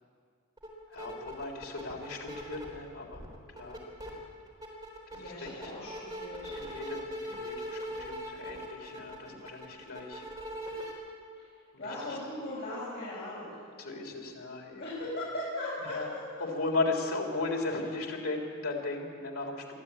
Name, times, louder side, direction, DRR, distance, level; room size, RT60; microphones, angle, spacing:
sound 1, 0.6-0.7 0.9-2.8 3.1-4.1 4.5-10.9, equal, 20° right, 4.0 m, -40 dB
voice 1, 0.9-3.2 3.5-3.8 4.1-4.3 5.1-5.8 6.5-10.3 11.8-12.2 13.8-14.8 15.9-16.1 16.4-19.7, left 3 dB, 85° left, 0 dB, 3.7 m, -36 dB
voice 2, 5.1-6.6 11.4-11.5 11.8-13.6 14.8-16.2, left 1 dB, 55° left, -9 dB, 7.1 m, -38 dB
23.0 x 14.0 x 8.7 m, 2.2 s
head